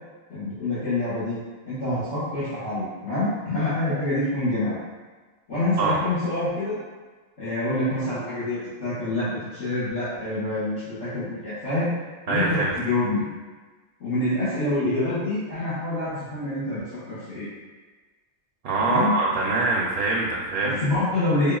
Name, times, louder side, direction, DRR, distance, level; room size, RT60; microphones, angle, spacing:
voice 1, 0.3-1.4 1.7-4.8 5.5-6.8 7.4-11.9 12.3-13.2 14.0-17.5 18.8-19.2 20.8-21.5, left 2 dB, 75° left, -15 dB, 1.5 m, -26 dB
voice 2, 12.3-12.7 18.6-20.8, right 3 dB, 65° right, -3 dB, 0.7 m, -24 dB
5.4 x 2.3 x 2.3 m, 1.3 s
omnidirectional pair, 1.2 m